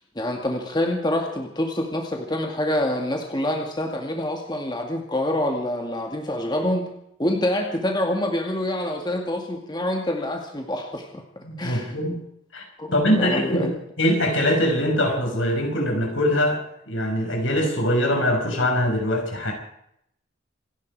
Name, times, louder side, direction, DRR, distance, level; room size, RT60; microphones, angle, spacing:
voice 1, 0.2-6.9 7.2-11.2 11.6-12.0 12.8-13.7, left 1 dB, 20° left, 2 dB, 2.2 m, -26 dB
voice 2, 11.4-12.2 12.5-12.6 12.9-19.5, equal, 75° left, 2 dB, 5.9 m, -23 dB
27.5 x 11.0 x 4.8 m, 0.73 s
head